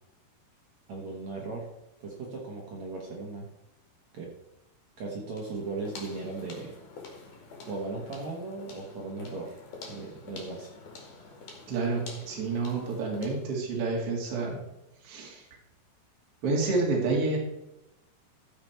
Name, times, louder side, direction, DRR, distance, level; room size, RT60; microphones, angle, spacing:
voice 1, 0.9-1.7 2.0-3.5 4.1-4.3 5.0-6.7 7.7-10.7, right 3 dB, 60° right, -2 dB, 1.9 m, -37 dB
sound 1, 5.3-13.5, left 3 dB, 50° left, 3.2 m, -47 dB
voice 2, 11.7-14.6 15.0-15.4 16.4-17.4, right 3 dB, 40° right, -1 dB, 2.8 m, -29 dB
14.5 x 6.2 x 4.5 m, 0.90 s
omnidirectional pair, 5.1 m